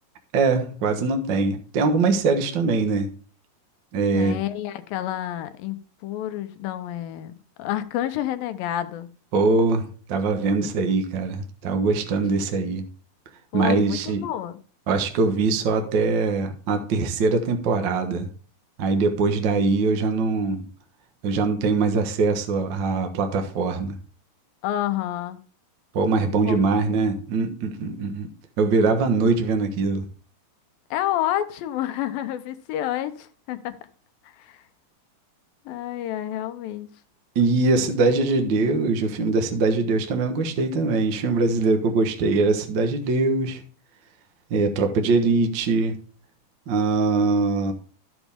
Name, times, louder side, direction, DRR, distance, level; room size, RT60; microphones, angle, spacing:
voice 1, 0.3-3.1 3.9-4.4 9.3-12.8 13.5-14.3 14.9-18.3 18.8-20.7 21.2-24.0 25.9-28.3 28.6-30.1 37.3-43.6 44.5-46.0 46.7-47.7, right 3 dB, 85° right, 1.0 m, -22 dB
voice 2, 4.1-5.8 6.0-7.3 7.6-9.1 10.6-10.7 12.2-12.3 13.5-14.6 24.6-25.4 26.5-26.6 30.9-33.8 34.4-34.6 35.7-36.9, left 12 dB, 80° left, 2.5 m, -29 dB
12.5 x 7.1 x 3.5 m
omnidirectional pair, 4.1 m